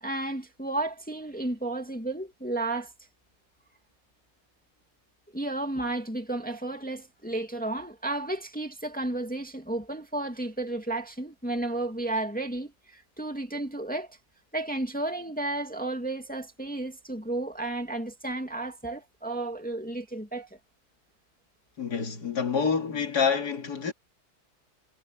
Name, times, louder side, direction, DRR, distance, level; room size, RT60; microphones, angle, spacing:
voice 1, 0.0-2.9 5.3-14.2 14.5-20.6, right 2 dB, 5° left, 2.1 m, -32 dB
voice 2, 21.8-23.9, left 6 dB, 60° left, 2.9 m, -27 dB
omnidirectional pair, 1.9 m